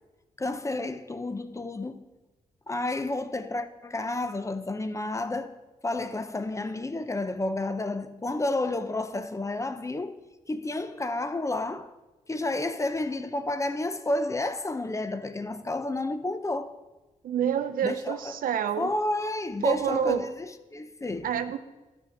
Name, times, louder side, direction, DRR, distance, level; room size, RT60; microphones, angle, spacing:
voice 1, 0.4-2.1 2.7-5.5 5.8-10.2 10.5-11.9 12.3-16.7 17.8-18.4 18.8-21.3, left 2 dB, 20° left, 0.6 m, -31 dB
voice 2, 17.2-18.9 19.6-20.3 21.2-21.6, right 8 dB, 85° right, 0.6 m, -27 dB
12.0 x 4.5 x 5.8 m
cardioid pair, 65°, 14 cm